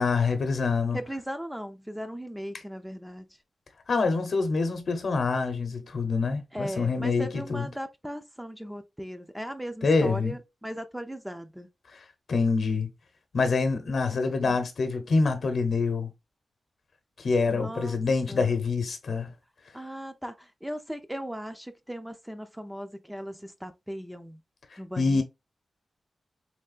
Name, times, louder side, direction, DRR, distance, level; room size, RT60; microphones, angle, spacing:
voice 1, 0.0-1.0 3.9-7.7 9.8-10.3 12.3-12.9 13.3-16.1 17.2-19.3 25.0-25.2, left 4 dB, 65° left, 0.8 m, -26 dB
voice 2, 0.9-3.3 6.5-11.7 14.1-14.6 17.5-18.0 18.3-18.5 19.7-24.4 24.8-25.2, equal, 5° right, 0.4 m, -38 dB
3.5 x 3.3 x 2.4 m
wide cardioid pair, 90°, 0 cm